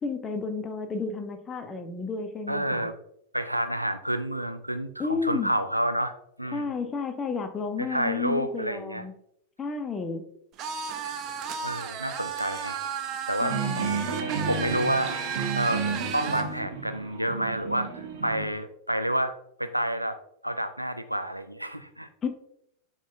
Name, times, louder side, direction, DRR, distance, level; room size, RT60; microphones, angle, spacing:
voice 1, 0.0-2.9 5.0-5.5 6.5-9.1 9.6-10.3 13.4-13.9 22.2-22.3, left 4 dB, 20° left, 6 dB, 1.1 m, -32 dB
voice 2, 2.5-2.9 3.3-6.1 6.4-6.7 7.8-9.0 11.6-12.8 13.3-13.6 14.2-15.1 15.5-19.3 19.6-20.2 20.4-22.1, right 1 dB, 90° right, 9 dB, 0.6 m, -29 dB
sound 1, 10.6-16.5, right 7 dB, 35° right, 1.0 m, -34 dB
sound 2, 13.5-18.4, right 5 dB, 55° right, 1.5 m, -32 dB
10.5 x 4.1 x 3.5 m, 0.73 s
figure-of-eight pair, 90°, 0 cm